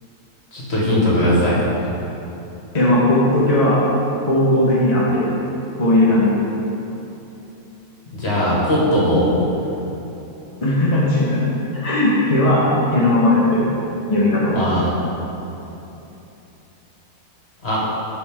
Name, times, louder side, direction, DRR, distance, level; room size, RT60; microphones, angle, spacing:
voice 1, 0.5-1.9 8.1-9.4 14.5-14.9 17.6-17.8, equal, 45° left, -7 dB, 2.0 m, -19 dB
voice 2, 2.7-3.9 4.3-5.3 5.8-6.4 10.6-11.4 11.7-13.6 14.1-14.6, left 1 dB, 25° left, -8 dB, 1.1 m, -17 dB
12.0 x 4.4 x 3.7 m, 3.0 s
omnidirectional pair, 1.6 m